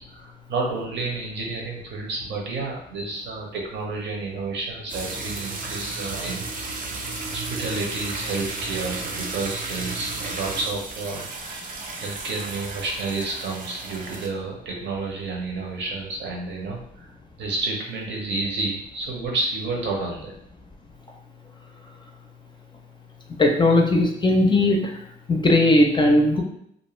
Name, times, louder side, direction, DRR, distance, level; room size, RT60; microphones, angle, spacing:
voice 1, 0.1-6.8 7.2-11.3 12.0-17.1 17.4-20.3, right 3 dB, 65° right, 0 dB, 0.8 m, -30 dB
sound 1, 4.9-14.3, right 3 dB, 45° right, 0.5 m, -33 dB
voice 2, 23.4-25.0 25.3-26.4, left 1 dB, 25° left, 2 dB, 0.4 m, -18 dB
2.5 x 2.2 x 3.1 m, 0.70 s
cardioid pair, 90°, 20 cm